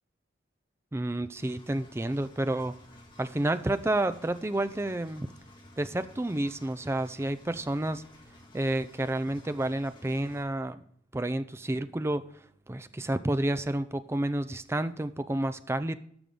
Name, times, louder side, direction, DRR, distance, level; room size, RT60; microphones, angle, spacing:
voice 1, 0.9-2.8 3.2-5.3 5.8-8.0 8.5-10.8 11.1-12.3 12.7-16.0, right 1 dB, 15° right, 12 dB, 0.4 m, -30 dB
Engine, 1.3-10.4, left 1 dB, 25° left, 1.5 m, -54 dB
12.0 x 6.5 x 3.7 m, 0.64 s
head